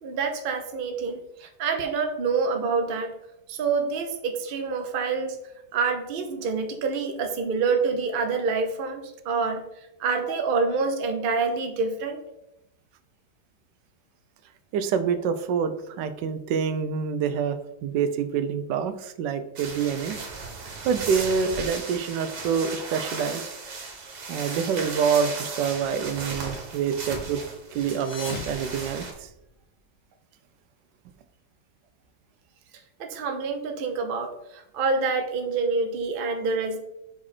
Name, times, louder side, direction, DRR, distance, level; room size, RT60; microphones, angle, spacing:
voice 1, 0.0-3.1 3.5-5.4 5.7-9.6 10.0-12.2 33.0-36.8, right 4 dB, 45° right, 5 dB, 0.7 m, -27 dB
voice 2, 14.7-20.2 20.8-23.5 24.3-27.4 27.7-29.3, right 6 dB, 85° right, 11 dB, 1.2 m, -26 dB
shower curtain, 19.6-29.1, right 4 dB, 65° right, 1.8 m, -36 dB
sound 1, 27.8-29.7, left 4 dB, 45° left, 0.9 m, -40 dB
5.3 x 4.9 x 4.3 m, 0.87 s
omnidirectional pair, 1.9 m